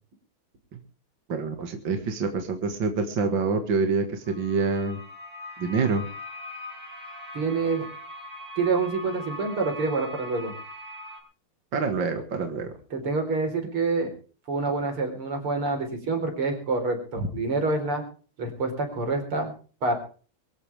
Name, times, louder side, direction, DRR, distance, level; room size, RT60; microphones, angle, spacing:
voice 1, 1.3-5.0 5.6-6.1 11.7-12.7, right 4 dB, 60° right, 5 dB, 2.5 m, -26 dB
sound 1, 4.3-11.2, left 1 dB, 45° right, 5.8 m, -41 dB
voice 2, 7.3-7.9 8.6-10.6 12.9-14.1 14.5-18.0 18.4-19.5 19.8-19.9, right 3 dB, 85° right, 5 dB, 5.2 m, -27 dB
23.5 x 14.0 x 3.5 m, 0.39 s
omnidirectional pair, 2.3 m